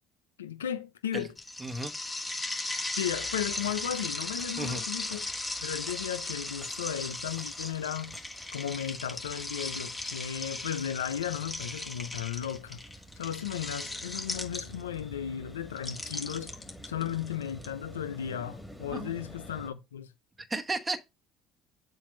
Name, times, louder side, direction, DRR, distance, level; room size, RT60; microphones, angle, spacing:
voice 1, 0.4-1.3 3.0-8.2 8.5-12.8 13.2-16.6 16.9-20.1, left 9 dB, 85° left, 0.5 m, -35 dB
sound 1, 1.4-15.0 15.8-17.7, left 2 dB, 20° left, 1.7 m, -37 dB
voice 2, 1.6-1.9 4.6-4.8 18.9-19.1 20.4-21.0, right 2 dB, 20° right, 1.0 m, -33 dB
sound 2, 3.1-19.7, right 1 dB, ahead, 2.0 m, -50 dB
7.3 x 2.6 x 5.1 m
hypercardioid pair, 60°, 0 cm